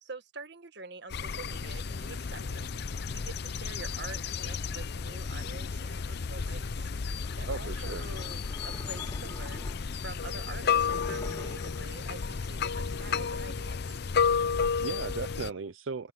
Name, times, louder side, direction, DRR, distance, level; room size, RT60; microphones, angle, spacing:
voice 1, 0.0-2.7 3.1-6.9 7.4-8.4 8.6-9.7 10.0-13.9, right 3 dB, 60° right, 1.7 m, -46 dB
sound 1, 1.1-15.5, left 6 dB, 60° left, 0.6 m, -32 dB
sound 2, 7.2-10.1 10.6-11.8, left 1 dB, 20° left, 1.2 m, -46 dB
voice 2, 7.5-8.0 14.6-16.1, right 4 dB, 80° right, 0.6 m, -37 dB
head